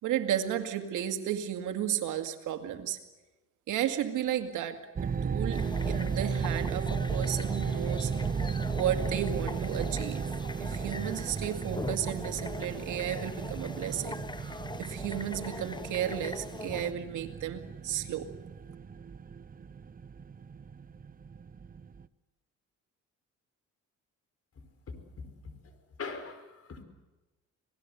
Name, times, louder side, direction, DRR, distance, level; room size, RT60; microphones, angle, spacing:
voice 1, 0.0-3.0 3.7-8.1 8.8-10.3 10.6-18.3, right 10 dB, 85° right, 7 dB, 2.2 m, -33 dB
sound 1, 5.0-22.1, right 6 dB, 30° right, 0.8 m, -35 dB
sound 2, 5.5-16.9, left 3 dB, 15° left, 0.9 m, -42 dB
voice 2, 24.9-25.7 26.0-26.8, left 4 dB, 50° left, 8 dB, 4.9 m, -42 dB
26.5 x 19.0 x 8.0 m, 1.1 s
cardioid pair, 90°, 30 cm